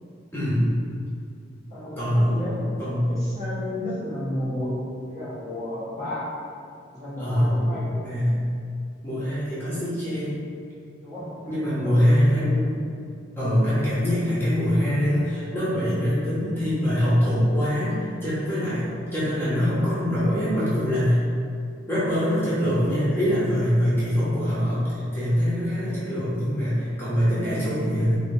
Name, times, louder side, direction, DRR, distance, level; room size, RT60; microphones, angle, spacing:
voice 1, 0.3-0.7 2.0-2.4 2.8-3.2 7.2-8.4 9.0-10.4 11.5-12.8 13.4-18.9 19.1-21.2 21.9-28.1, equal, 10° left, -11 dB, 0.7 m, -23 dB
voice 2, 1.7-2.5 3.2-4.7 5.0-6.3 6.9-7.8 11.0-12.1 12.3-12.5, left 1 dB, 40° right, -12 dB, 1.4 m, -32 dB
4.8 x 2.1 x 2.6 m, 2.4 s
head